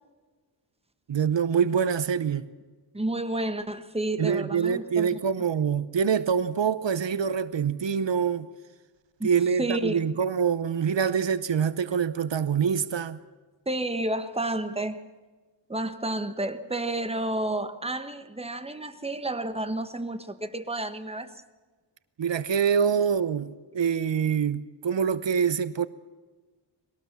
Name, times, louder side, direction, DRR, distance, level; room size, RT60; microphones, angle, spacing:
voice 1, 1.1-2.5 4.2-8.5 9.2-13.2 22.2-25.9, right 7 dB, 75° right, 0.9 m, -25 dB
voice 2, 2.9-5.1 9.2-9.3 9.6-10.0 13.6-15.0 15.7-21.4, right 1 dB, 15° right, 1.3 m, -30 dB
21.5 x 18.5 x 7.2 m
wide cardioid pair, 80°, 44 cm